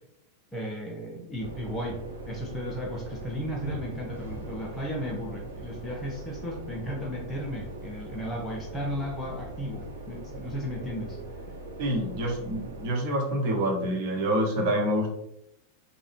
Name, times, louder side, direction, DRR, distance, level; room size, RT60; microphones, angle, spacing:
voice 1, 0.5-11.2, equal, 10° left, -2 dB, 0.5 m, -35 dB
sound 1, 1.4-12.9, right 1 dB, 70° right, 0.8 m, -41 dB
voice 2, 11.8-15.1, right 1 dB, 45° right, 0 dB, 0.9 m, -27 dB
3.6 x 2.1 x 3.2 m, 0.80 s
figure-of-eight pair, 90°, 0 cm